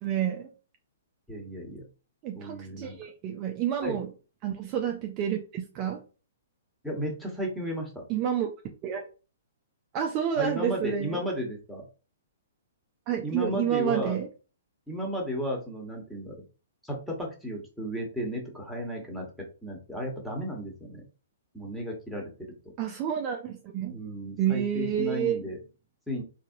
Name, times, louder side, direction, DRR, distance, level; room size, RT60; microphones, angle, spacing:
voice 1, 0.0-0.5 2.2-4.1 4.4-6.0 8.1-8.5 8.8-9.0 9.9-11.2 13.1-14.3 22.8-24.0 24.4-25.4, right 9 dB, 30° right, 4 dB, 0.5 m, -29 dB
voice 2, 1.3-1.8 2.3-3.0 3.8-4.0 6.8-8.0 10.4-11.8 13.2-14.2 14.9-16.4 16.8-19.3 19.6-21.0 21.5-22.3 23.9-25.6 26.1-26.2, equal, ahead, -2 dB, 1.2 m, -34 dB
3.9 x 2.8 x 2.6 m, 0.34 s
figure-of-eight pair, 120°, 0 cm